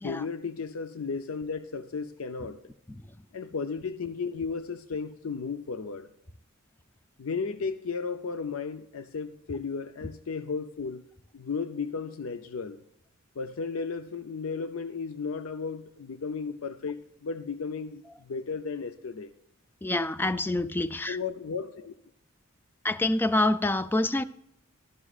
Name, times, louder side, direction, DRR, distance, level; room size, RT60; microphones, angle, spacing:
voice 1, 0.0-2.6 3.3-6.1 7.2-11.0 11.3-12.8 13.4-19.3 21.1-21.9, left 5 dB, 85° left, 0.5 m, -34 dB
voice 2, 19.8-21.2 22.8-24.2, left 2 dB, 10° left, 0.3 m, -27 dB
12.5 x 11.0 x 2.4 m
head